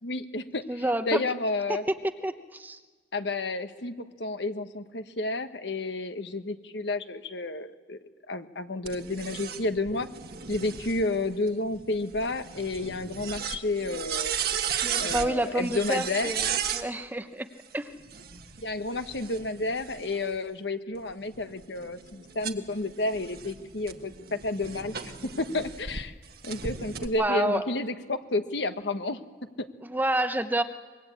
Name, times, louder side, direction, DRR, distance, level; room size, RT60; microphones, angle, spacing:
voice 1, 0.0-1.8 3.1-3.9 4.2-8.0 8.3-10.1 10.5-14.6 15.0-16.3 18.6-25.1 25.4-26.1 26.4-29.2 29.6-29.7, left 2 dB, 70° left, 8 dB, 1.3 m, -31 dB
voice 2, 0.7-1.2 1.7-1.8 2.2-2.8 14.8-17.5 17.7-17.9 27.2-27.6 29.8-30.6, right 1 dB, 10° right, 9 dB, 0.8 m, -29 dB
sound 1, 8.9-16.9 18.0-20.4 20.9-26.0 26.4-27.1, right 7 dB, 55° right, 1.5 m, -35 dB
25.0 x 22.0 x 8.6 m, 1.4 s
head